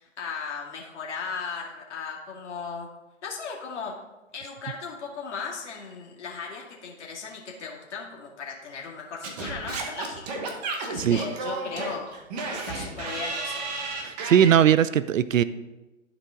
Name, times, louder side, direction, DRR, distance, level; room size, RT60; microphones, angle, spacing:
voice 1, 0.0-2.9 3.2-3.9 4.3-12.1 12.5-13.7, left 5 dB, 65° left, -2 dB, 2.2 m, -37 dB
Singing / Scratching (performance technique), 9.2-14.6, right 3 dB, 35° right, 1.2 m, -32 dB
voice 2, 14.0-15.4, right 9 dB, 90° right, 16 dB, 0.5 m, -20 dB
11.5 x 4.8 x 3.7 m, 1.1 s
hypercardioid pair, 140°, 38 cm